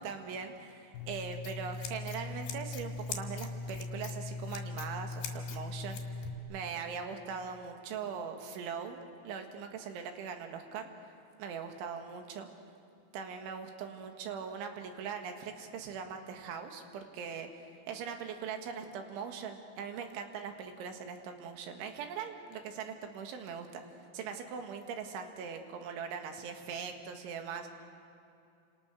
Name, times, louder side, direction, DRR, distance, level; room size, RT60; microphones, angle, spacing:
voice 1, 0.0-6.2 6.5-10.9 11.4-12.5 13.1-17.5 17.9-27.7, right 6 dB, 75° right, 5 dB, 4.1 m, -41 dB
Scissors, 0.9-6.3, left 3 dB, 60° left, 3.9 m, -39 dB
30.0 x 27.5 x 6.4 m, 2.6 s
omnidirectional pair, 5.7 m